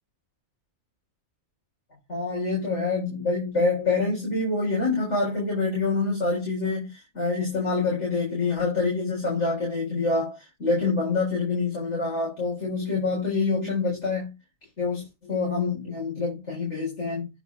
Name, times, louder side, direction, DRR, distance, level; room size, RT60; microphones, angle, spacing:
voice 1, 2.1-14.3 14.8-17.3, left 3 dB, 85° left, 4.9 m, -26 dB
9.9 x 4.3 x 3.8 m
omnidirectional pair, 1.2 m